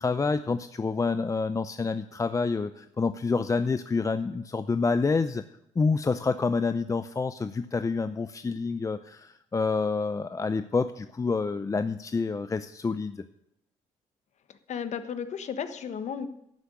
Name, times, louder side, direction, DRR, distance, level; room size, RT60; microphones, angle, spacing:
voice 1, 0.0-5.4 5.8-13.2, left 4 dB, 25° left, 11 dB, 0.6 m, -28 dB
voice 2, 14.5-16.3, left 7 dB, 60° left, 10 dB, 1.3 m, -34 dB
11.5 x 8.1 x 9.5 m, 0.77 s
cardioid pair, 80°, 13 cm